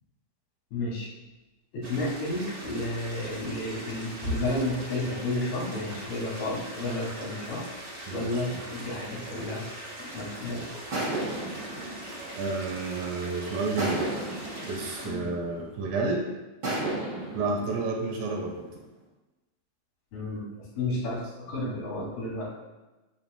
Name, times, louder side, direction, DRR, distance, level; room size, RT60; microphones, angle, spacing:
voice 1, 0.7-1.1 1.7-7.7 8.1-9.6 10.0-10.7 15.0-15.3 20.1-22.5, left 1 dB, 80° left, -6 dB, 4.5 m, -32 dB
sound 1, 1.8-15.1, right 1 dB, 50° right, 0.8 m, -41 dB
voice 2, 8.1-8.6 12.3-14.0 14.7-16.3 17.3-18.7, right 3 dB, 75° right, 1 dB, 2.9 m, -30 dB
sound 2, 10.9-13.2 13.8-15.9 16.6-18.9, right 1 dB, 30° right, 2.8 m, -34 dB
9.7 x 8.6 x 2.3 m, 1.1 s
omnidirectional pair, 4.3 m